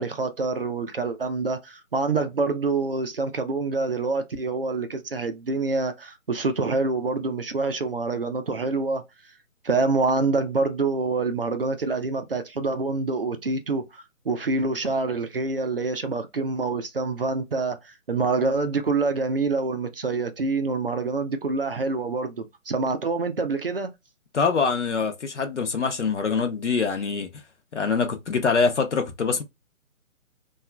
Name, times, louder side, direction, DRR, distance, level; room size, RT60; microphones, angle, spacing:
voice 1, 0.0-9.0 9.6-23.9, right 3 dB, 45° right, 0.5 m, -26 dB
voice 2, 24.3-27.3 27.7-29.4, left 5 dB, 60° left, 0.6 m, -24 dB
2.8 x 2.3 x 2.2 m
figure-of-eight pair, 150°, 41 cm